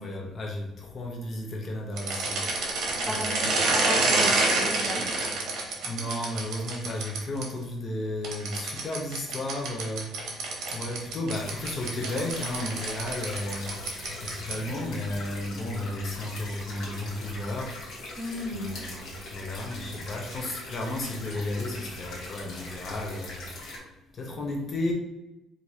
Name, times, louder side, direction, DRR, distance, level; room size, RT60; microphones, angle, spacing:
voice 1, 0.0-2.4 3.1-3.4 5.8-10.2 10.7-13.7 14.2-17.8 18.5-23.4 24.2-24.9, left 1 dB, 35° left, 0 dB, 0.6 m, -33 dB
sound 1, 1.9-7.4 8.2-14.7, right 3 dB, 60° right, 1.0 m, -28 dB
voice 2, 3.0-5.1 18.2-18.8, equal, 10° right, -2 dB, 0.8 m, -35 dB
sound 2, 11.3-23.8, left 2 dB, 60° left, 1.2 m, -41 dB
4.5 x 2.5 x 2.7 m, 0.95 s
cardioid pair, 150°, 0 cm